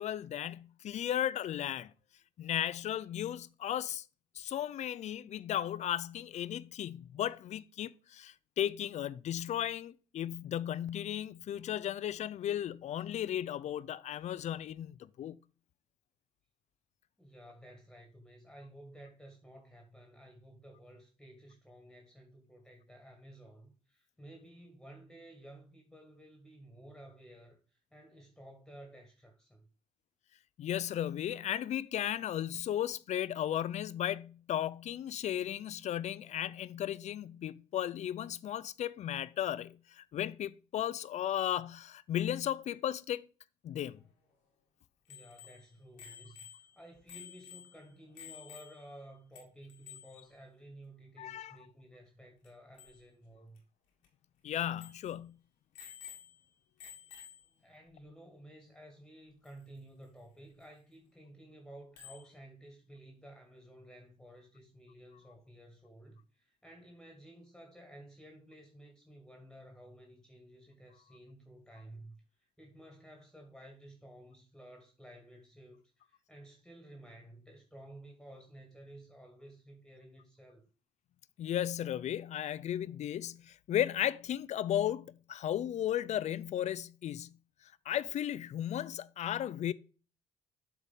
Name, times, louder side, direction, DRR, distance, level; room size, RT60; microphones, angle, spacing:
voice 1, 0.0-1.9 2.4-4.0 4.3-15.4 30.6-43.3 43.6-44.0 51.2-51.6 54.4-55.4 81.4-87.4 87.6-89.7, left 11 dB, 55° left, 0.4 m, -35 dB
voice 2, 17.2-29.7 45.1-53.6 57.6-80.6, right 1 dB, 5° left, 1.8 m, -54 dB
Bicycle bell, 45.1-49.1 49.4-49.5 49.7-50.2 52.4-52.5 52.8-53.0 53.6-53.7 54.0-54.1 54.8-55.1 55.7-56.5 56.8-57.6 59.5-59.6 62.0-62.3, left 10 dB, 85° left, 1.8 m, -52 dB
8.4 x 3.5 x 5.5 m
hypercardioid pair, 50°, 14 cm